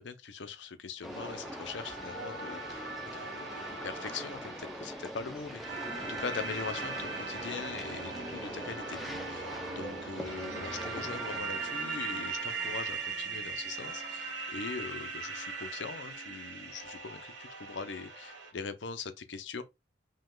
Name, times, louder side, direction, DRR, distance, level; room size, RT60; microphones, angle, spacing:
voice 1, 0.0-8.1 8.6-19.6, left 5 dB, 70° left, 0.7 m, -42 dB
sound 1, 1.0-11.4, equal, ahead, 0.6 m, -43 dB
sound 2, 1.1-18.5, right 4 dB, 75° right, 1.8 m, -40 dB
sound 3, 5.7-17.1, right 3 dB, 45° right, 0.5 m, -48 dB
5.4 x 2.4 x 3.7 m
head